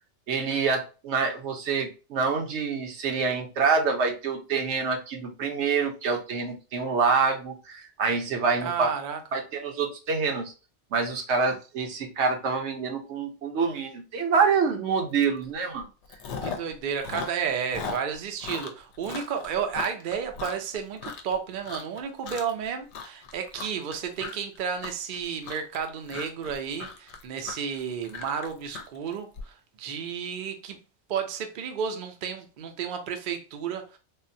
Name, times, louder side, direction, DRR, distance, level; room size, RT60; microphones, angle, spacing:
voice 1, 0.3-8.9 9.3-10.5 10.9-15.9, right 5 dB, 75° right, 1.0 m, -26 dB
voice 2, 8.6-9.2 16.4-30.8 31.1-34.0, right 7 dB, 60° right, 0.6 m, -32 dB
Chewing mastication, 15.2-15.4 15.7-16.7 17.0-21.3 21.6-22.0 22.2-22.6 22.9-29.4, left 5 dB, 75° left, 0.8 m, -38 dB
3.5 x 2.1 x 2.6 m
omnidirectional pair, 1.2 m